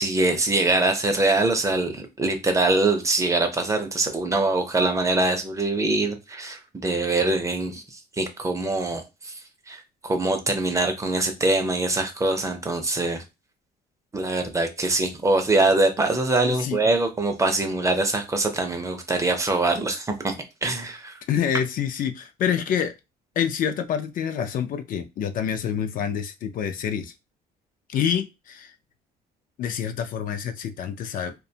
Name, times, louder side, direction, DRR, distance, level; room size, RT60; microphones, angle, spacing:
voice 1, 0.0-9.4 9.7-13.2 14.1-20.3 20.6-21.2, right 2 dB, 20° right, 0.5 m, -23 dB
voice 2, 21.3-22.9 23.4-27.1 27.9-28.7 29.6-31.3, left 8 dB, 55° left, 0.4 m, -27 dB
2.4 x 2.2 x 2.7 m
cardioid pair, 110°, 17 cm